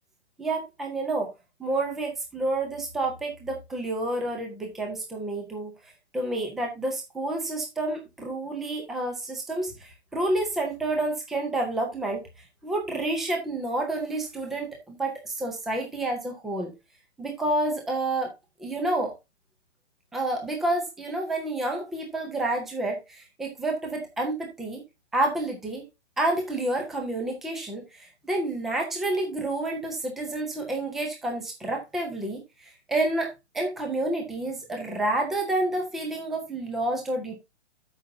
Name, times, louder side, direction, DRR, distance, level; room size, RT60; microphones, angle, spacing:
voice 1, 0.4-1.3 1.6-5.7 6.1-12.2 12.6-16.7 17.2-18.3 18.6-19.1 20.1-24.8 25.1-25.8 26.2-32.4 32.9-33.3 33.5-37.3, right 2 dB, ahead, 1 dB, 0.6 m, -29 dB
13.0 x 5.5 x 2.6 m, 0.23 s
hypercardioid pair, 160°, 34 cm